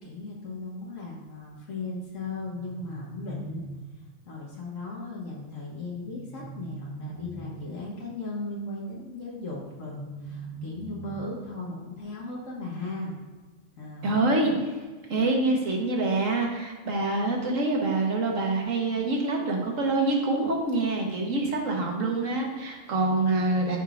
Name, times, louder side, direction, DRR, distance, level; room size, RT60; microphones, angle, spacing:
voice 1, 0.0-3.6 4.2-13.2 13.8-14.2 15.0-15.1, left 2 dB, 80° left, -3 dB, 1.6 m, -37 dB
sound 1, 2.2-4.2 5.9-7.8 9.6-11.6, right 2 dB, 25° left, 1.3 m, -42 dB
voice 2, 14.0-14.7 15.1-23.8, right 2 dB, 80° right, 0 dB, 1.7 m, -26 dB
12.0 x 5.1 x 2.5 m, 1.3 s
omnidirectional pair, 1.3 m